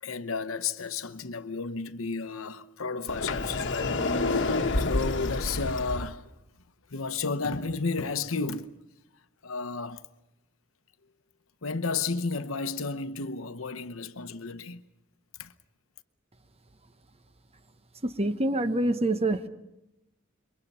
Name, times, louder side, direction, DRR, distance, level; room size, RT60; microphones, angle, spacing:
voice 1, 0.0-4.0 4.3-6.3 6.9-8.8 9.4-10.0 11.6-14.8 15.4-15.5, left 4 dB, 75° left, 0.9 m, -32 dB
Sliding door, 3.1-6.1, left 2 dB, 60° left, 1.3 m, -28 dB
voice 2, 18.0-19.5, right 1 dB, 30° right, 1.0 m, -26 dB
28.0 x 23.0 x 5.5 m
head